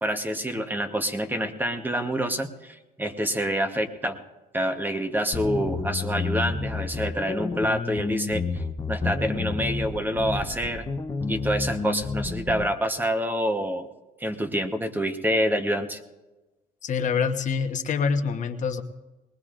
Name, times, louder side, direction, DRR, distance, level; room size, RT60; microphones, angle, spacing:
voice 1, 0.0-4.2 4.5-10.9 11.3-13.9 14.2-16.0, equal, 10° right, 7 dB, 1.1 m, -27 dB
sound 1, 5.3-12.7, left 4 dB, 20° left, 0.8 m, -30 dB
voice 2, 16.8-18.8, left 6 dB, 45° left, 6 dB, 1.1 m, -26 dB
21.0 x 19.0 x 2.5 m, 1.1 s
cardioid pair, 110°, 17 cm